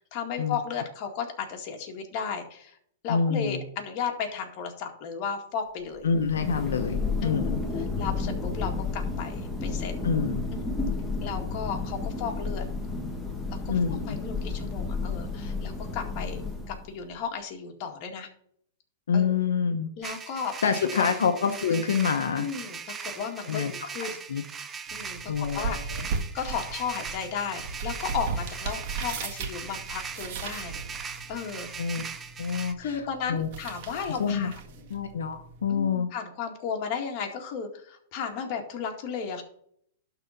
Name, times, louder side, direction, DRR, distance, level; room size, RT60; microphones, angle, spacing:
voice 1, 0.0-2.8 3.0-6.1 7.2-7.4 8.0-10.0 10.5-10.7 11.2-12.6 13.7-18.3 19.1-19.4 20.0-20.5 20.9-21.1 22.4-24.2 24.9-31.7 32.8-34.5 35.7-39.4, left 6 dB, 45° left, 2 dB, 2.0 m, -34 dB
voice 2, 3.1-3.6 6.0-7.6 10.0-10.4 13.7-14.2 19.1-19.9 20.6-22.5 23.5-24.4 25.3-26.0 31.8-32.0 32.4-33.0 33.3-33.5 33.9-34.5 34.9-36.1, left 6 dB, 85° left, 6 dB, 0.8 m, -27 dB
Thunder, 6.0-17.0, left 4 dB, 5° left, 1.4 m, -32 dB
sound 1, 20.0-32.7, right 6 dB, 20° right, 0.7 m, -40 dB
sound 2, 24.9-35.9, right 4 dB, 50° right, 1.8 m, -37 dB
12.0 x 4.0 x 5.7 m, 0.65 s
hypercardioid pair, 130°, 0 cm